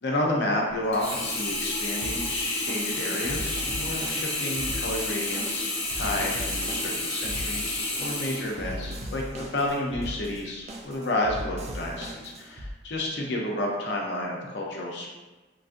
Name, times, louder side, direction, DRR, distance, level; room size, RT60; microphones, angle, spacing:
voice 1, 0.0-15.1, left 1 dB, 70° left, -1 dB, 0.6 m, -31 dB
Sink (filling or washing), 0.9-9.2 9.7-9.8, left 2 dB, 35° left, 0.9 m, -31 dB
sound 1, 2.0-12.7, equal, 40° right, 0.4 m, -38 dB
3.1 x 2.5 x 2.5 m, 1.2 s
head